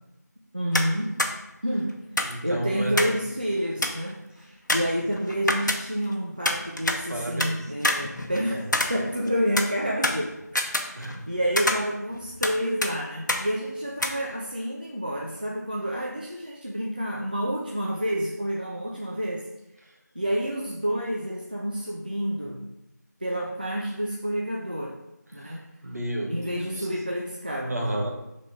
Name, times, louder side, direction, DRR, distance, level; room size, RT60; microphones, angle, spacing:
voice 1, 0.5-1.2 1.6-2.1 2.4-10.4 10.7-19.5 20.1-22.6 23.2-25.0 25.3-25.6 26.3-27.8, equal, 30° right, -3 dB, 0.4 m, -29 dB
sound 1, 0.7-0.9 1.2-1.3 2.2-3.2 3.5-3.6 3.8-4.1 4.7-6.1 6.4-7.5 7.8-9.3 9.6-11.3 11.6-12.6 12.8-12.9 13.3-13.4 14.0-14.1, left 1 dB, 80° left, 0.9 m, -26 dB
voice 2, 2.2-3.1 7.1-7.7 8.5-8.8 10.9-11.2 25.3-26.9 27.7-28.1, right 1 dB, 60° right, 0 dB, 1.4 m, -32 dB
5.5 x 3.7 x 4.7 m, 0.90 s
figure-of-eight pair, 175°, 10 cm